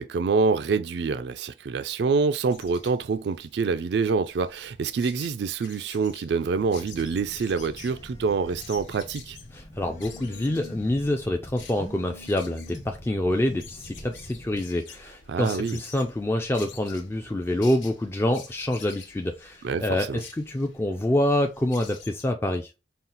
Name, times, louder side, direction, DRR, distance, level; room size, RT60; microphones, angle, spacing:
voice 1, 0.0-9.4 15.3-15.8 19.6-20.2, right 4 dB, 60° right, 0.3 m, -26 dB
sound 1, 2.5-22.2, left 6 dB, 90° left, 1.2 m, -49 dB
Telephone, 6.6-14.6, left 1 dB, 40° left, 1.1 m, -45 dB
voice 2, 9.5-22.7, left 1 dB, 15° left, 0.3 m, -26 dB
5.5 x 2.4 x 3.9 m
head